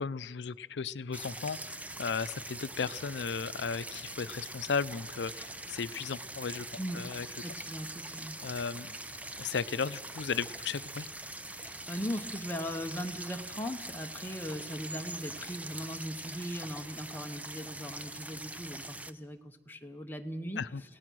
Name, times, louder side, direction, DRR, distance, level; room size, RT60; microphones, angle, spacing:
voice 1, 0.0-6.7 6.9-7.3 8.4-8.9 9.4-11.1 20.6-20.8, left 5 dB, 80° left, 17 dB, 0.5 m, -35 dB
sound 1, 1.1-19.1, right 2 dB, 10° right, 0.5 m, -43 dB
voice 2, 6.8-7.1 7.4-8.4 11.5-20.6, equal, 10° left, 4 dB, 0.9 m, -39 dB
29.0 x 16.5 x 6.2 m, 1.5 s
head